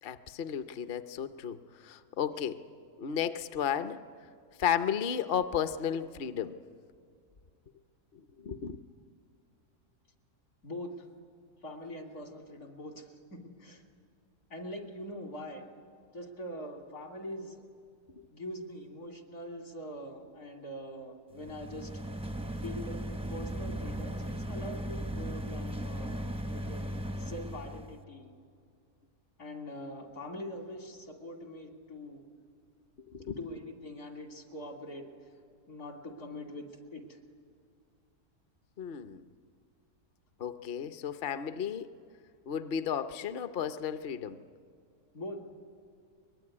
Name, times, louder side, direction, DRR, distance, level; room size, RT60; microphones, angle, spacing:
voice 1, 0.0-2.6 3.0-4.0 4.6-6.5 8.4-8.8 18.2-18.3 33.1-33.4 38.8-39.2 40.4-41.9 42.5-44.4, left 8 dB, 50° left, 10 dB, 0.7 m, -33 dB
voice 2, 10.6-11.1 11.6-13.8 14.5-15.6 16.1-17.6 18.3-22.0 22.6-26.8 27.2-28.3 29.4-32.2 33.3-35.1 35.7-37.2 45.1-45.5, left 1 dB, 70° left, 2 dB, 3.2 m, -43 dB
sound 1, 21.3-28.0, right 1 dB, 5° right, 0.4 m, -37 dB
23.5 x 21.0 x 9.8 m, 2.3 s
omnidirectional pair, 1.6 m